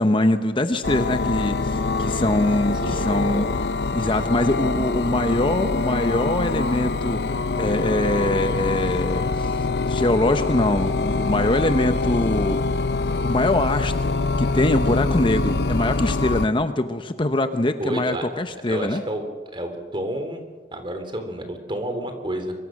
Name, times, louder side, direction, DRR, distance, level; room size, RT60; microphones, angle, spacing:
voice 1, 0.0-3.5 3.9-7.2 7.5-12.6 13.0-19.0, left 1 dB, 30° left, 8 dB, 0.9 m, -23 dB
sound 1, 0.8-16.5, left 3 dB, 65° left, 0.7 m, -24 dB
voice 2, 2.8-3.6 17.8-18.3 18.7-19.3 19.5-20.4 20.7-22.5, right 1 dB, 30° right, 7 dB, 3.5 m, -30 dB
24.0 x 23.5 x 6.5 m, 1.4 s
head